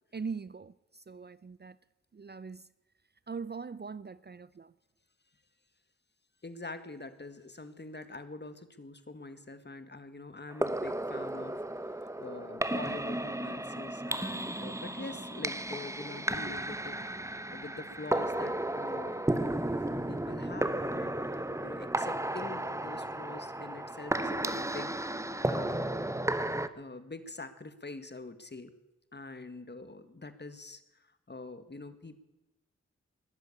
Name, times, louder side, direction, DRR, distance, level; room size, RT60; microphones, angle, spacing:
voice 1, 0.1-1.8 2.1-2.7 3.3-4.7, right 5 dB, 35° right, 0.6 m, -41 dB
voice 2, 6.4-19.6 20.1-25.1 25.4-26.1 26.8-28.8 29.1-32.2, left 3 dB, 35° left, 1.7 m, -45 dB
sound 1, 10.5-26.7, right 1 dB, 10° right, 1.0 m, -34 dB
21.0 x 7.8 x 8.5 m
cardioid pair, 45°, 30 cm